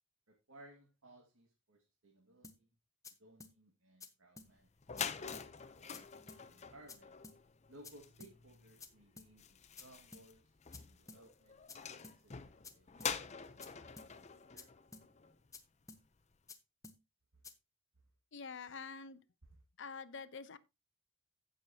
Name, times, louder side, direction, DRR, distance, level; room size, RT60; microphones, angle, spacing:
voice 1, 0.3-2.7 3.2-4.7 5.7-7.1 7.7-11.6 12.0-13.3 14.5-14.7 17.3-17.4, right 1 dB, 85° right, 2.1 m, -62 dB
sound 1, 2.4-2.6 3.0-3.1 3.4-3.5 4.0-4.1 4.4-4.5 5.0-5.1 5.3-5.5 5.9-6.0 6.3-6.4 6.9-7.0 7.2-7.4 7.8-7.9 8.2-8.3 8.8-8.9 9.2-9.3 9.8-9.9 10.1-10.3 10.7-10.8 11.1-11.2 11.7-11.8 12.0-12.2 12.6-12.7 13.0-13.1 13.6-13.7 14.0-14.1 14.6-14.7 14.9-15.1 15.5-15.6 15.9-16.0 16.5-16.6 16.8-17.0 17.4-17.5, left 3 dB, 15° left, 1.0 m, -53 dB
sound 2, 4.5-4.6 4.8-15.6, left 7 dB, 35° left, 0.7 m, -46 dB
voice 2, 18.3-19.2 19.8-20.6, left 5 dB, 60° left, 0.8 m, -46 dB
16.0 x 6.4 x 2.9 m
head